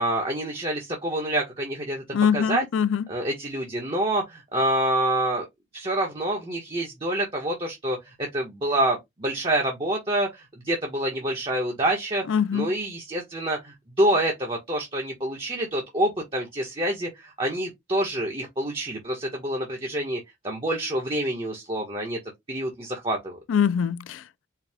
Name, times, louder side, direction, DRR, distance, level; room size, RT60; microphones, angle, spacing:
voice 1, 0.0-2.0 2.3-2.6 3.1-5.4 5.7-12.2 12.5-22.2 22.5-23.4, right 1 dB, 30° right, 1.1 m, -27 dB
voice 2, 2.1-3.0 12.3-12.7 23.5-24.5, left 7 dB, 90° left, 0.4 m, -23 dB
4.7 x 2.3 x 3.5 m
head